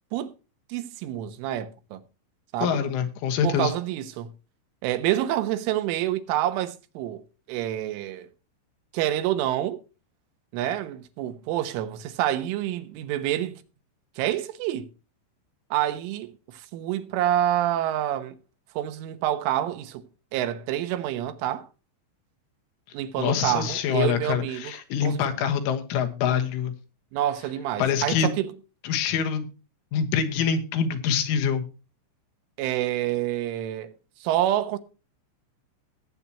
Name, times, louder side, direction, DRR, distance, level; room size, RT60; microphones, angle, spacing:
voice 1, 0.7-2.0 2.5-2.8 3.4-4.3 4.8-7.2 7.5-8.3 8.9-9.8 10.5-13.6 14.2-14.9 15.7-18.4 18.8-20.1 20.3-21.7 22.9-24.7 25.0-25.3 27.1-28.6 32.6-33.9 34.2-34.8, right 12 dB, 90° right, 3.6 m, -27 dB
voice 2, 2.6-3.7 23.2-26.7 27.8-28.3 28.8-29.5 29.9-31.7, left 7 dB, 85° left, 3.9 m, -25 dB
18.5 x 8.4 x 2.9 m
omnidirectional pair, 5.5 m